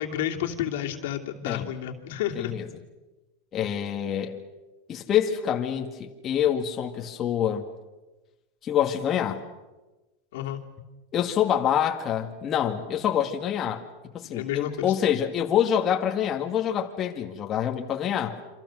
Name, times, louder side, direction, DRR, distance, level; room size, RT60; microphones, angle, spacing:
voice 1, 0.0-2.5 10.3-10.6 14.3-14.9, left 11 dB, 75° left, 2 dB, 2.9 m, -31 dB
voice 2, 2.4-2.7 3.5-4.4 4.9-7.7 8.6-9.4 11.1-13.8 14.1-18.4, left 9 dB, 30° left, 2 dB, 2.0 m, -26 dB
28.0 x 26.0 x 6.4 m, 1.1 s
supercardioid pair, 135°, 0 cm